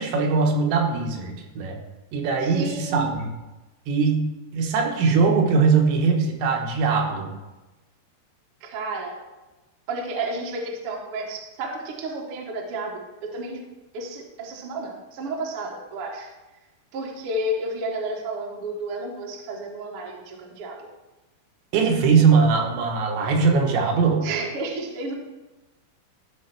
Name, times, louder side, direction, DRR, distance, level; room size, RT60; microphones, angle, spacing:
voice 1, 0.0-1.8 2.1-3.3 3.9-4.3 4.5-7.3 21.7-24.2, right 5 dB, 85° right, 1 dB, 3.5 m, -21 dB
voice 2, 2.4-3.1 8.6-9.2 9.9-13.6 13.9-16.3 16.9-20.9 24.2-25.1, right 2 dB, 65° right, 0 dB, 1.4 m, -31 dB
13.5 x 4.6 x 5.9 m, 1.1 s
omnidirectional pair, 5.1 m